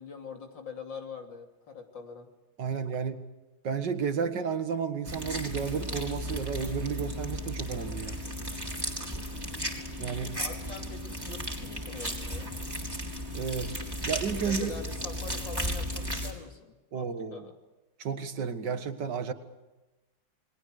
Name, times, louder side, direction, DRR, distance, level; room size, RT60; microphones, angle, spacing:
voice 1, 0.0-2.3 3.0-3.2 10.4-12.5 14.4-17.6, left 5 dB, 75° left, 3 dB, 3.5 m, -44 dB
voice 2, 2.6-3.3 3.6-8.2 10.0-10.4 13.3-13.8 14.0-14.8 16.9-17.4 18.0-19.3, right 6 dB, 65° right, 9 dB, 2.1 m, -32 dB
sound 1, 5.1-16.3, equal, 10° right, 3.8 m, -35 dB
29.0 x 21.5 x 6.5 m, 1.1 s
omnidirectional pair, 2.0 m